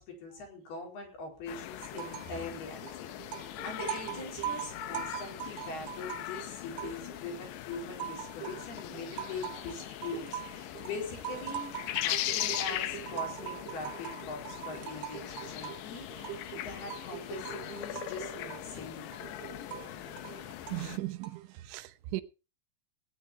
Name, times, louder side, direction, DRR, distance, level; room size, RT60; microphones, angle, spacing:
voice 1, 0.0-11.8 12.0-19.1, left 3 dB, 60° left, 6.3 m, -42 dB
sound 1, 1.5-21.0, left 15 dB, 80° left, 2.9 m, -40 dB
sound 2, 1.8-2.4 2.7-7.3 7.7-21.6, right 12 dB, 70° right, 3.1 m, -42 dB
voice 2, 20.7-21.4 21.7-22.2, right 18 dB, 90° right, 3.2 m, -36 dB
17.0 x 10.0 x 4.3 m
omnidirectional pair, 5.3 m